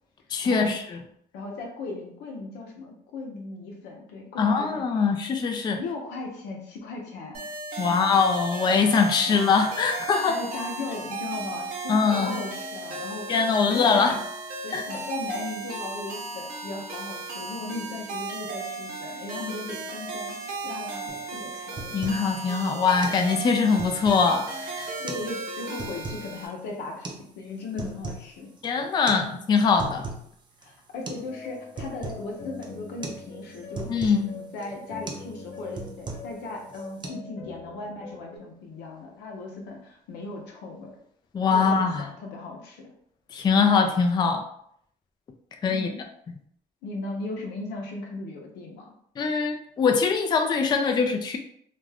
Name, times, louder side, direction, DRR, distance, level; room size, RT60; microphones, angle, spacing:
voice 1, 0.3-1.0 4.4-5.8 7.8-10.4 11.9-12.4 13.3-14.2 14.7-14.8 21.9-24.9 28.6-30.1 33.9-34.3 41.3-42.1 43.3-44.4 45.6-45.9 49.2-51.4, left 5 dB, 25° left, 4 dB, 0.3 m, -22 dB
voice 2, 1.3-4.8 5.8-7.4 7.8-8.2 9.3-9.4 10.2-13.3 13.7-14.2 14.6-20.4 20.6-22.0 24.8-28.5 30.6-33.9 34.3-41.0 41.5-42.9 45.7-46.0 46.8-48.9, left 3 dB, 85° left, 1 dB, 0.8 m, -37 dB
sound 1, 7.3-26.5, right 3 dB, 60° right, 0.8 m, -36 dB
sound 2, 21.1-21.2 21.5-22.3 22.6-22.7 23.0-23.2 23.6-24.3 24.9-25.3 25.6-26.3 27.0-27.2 27.6-28.3 28.6-28.7 29.1-29.2 29.6-30.3 30.6-30.7 31.1-31.3 31.5-32.2 32.6-32.8 33.0-33.2 33.5-34.2 34.6-34.8 35.1-35.3 35.6-36.4 36.7-37.1, right 3 dB, 25° right, 0.5 m, -37 dB
sound 3, 31.2-38.4, left 2 dB, 45° left, 0.8 m, -43 dB
2.5 x 2.3 x 3.3 m, 0.68 s
cardioid pair, 110°, 17 cm